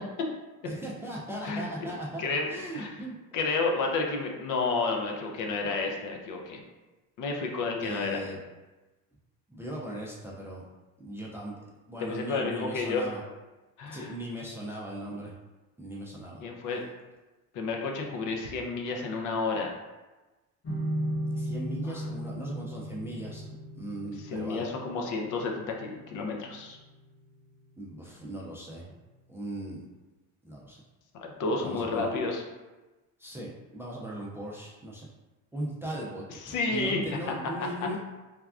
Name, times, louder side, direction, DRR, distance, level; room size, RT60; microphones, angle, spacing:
voice 1, 0.6-2.2 2.5-3.2 7.8-8.4 9.5-10.6 11.0-11.6 11.9-13.2 13.9-15.3 15.8-16.4 21.3-23.5 23.7-24.7 27.8-28.9 29.3-29.8 30.4-30.8 31.6-32.1 33.2-35.1 35.5-38.0, right 1 dB, 5° right, -5 dB, 0.4 m, -38 dB
voice 2, 3.3-6.6 7.2-8.2 12.0-13.0 13.8-14.1 15.1-15.2 16.4-16.8 17.5-19.7 21.8-22.0 24.2-26.8 31.1-32.4 36.3-37.3, left 3 dB, 55° left, 1 dB, 0.6 m, -31 dB
sound 1, 20.6-27.8, equal, 35° left, 1.0 m, -37 dB
3.4 x 2.2 x 2.4 m, 1.1 s
supercardioid pair, 105°, 37 cm